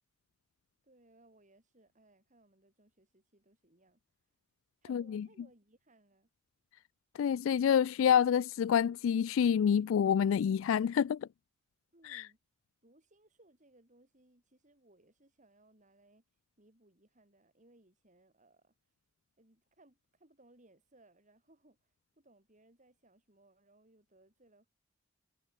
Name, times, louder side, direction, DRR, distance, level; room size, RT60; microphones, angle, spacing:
voice 1, 0.8-4.0 4.8-6.3 11.9-12.4 12.8-16.2 16.6-18.9 19.4-24.7, right 2 dB, 40° right, 4.8 m, -65 dB
voice 2, 4.9-5.2 7.2-11.2 12.0-12.3, left 8 dB, 75° left, 0.3 m, -27 dB
head